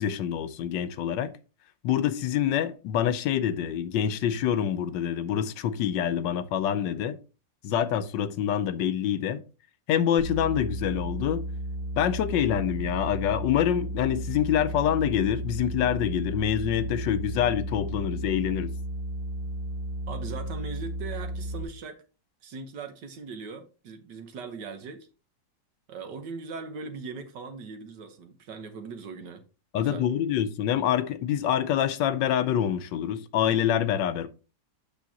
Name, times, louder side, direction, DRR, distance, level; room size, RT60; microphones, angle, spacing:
voice 1, 0.0-1.3 1.8-7.2 7.6-9.4 9.9-11.4 12.0-18.7 29.7-34.3, left 9 dB, 80° left, 1.3 m, -26 dB
sound 1, 10.2-21.6, equal, 35° right, 1.5 m, -34 dB
voice 2, 20.1-22.0 22.4-25.1 25.9-29.4 29.7-30.1, right 5 dB, 70° right, 1.7 m, -40 dB
8.3 x 6.2 x 2.8 m
omnidirectional pair, 2.0 m